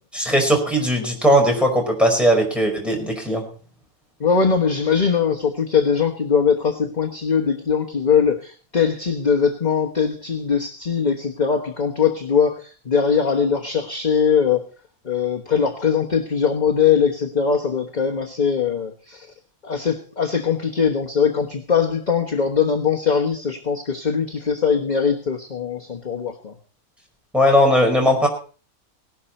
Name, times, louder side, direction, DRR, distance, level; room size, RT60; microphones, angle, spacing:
voice 1, 0.1-3.4 27.3-28.3, equal, ahead, 0 dB, 5.0 m, -18 dB
voice 2, 4.2-14.6 15.0-19.3 19.6-26.5, left 6 dB, 30° left, 2 dB, 1.2 m, -21 dB
18.0 x 12.5 x 4.3 m, 0.39 s
omnidirectional pair, 1.5 m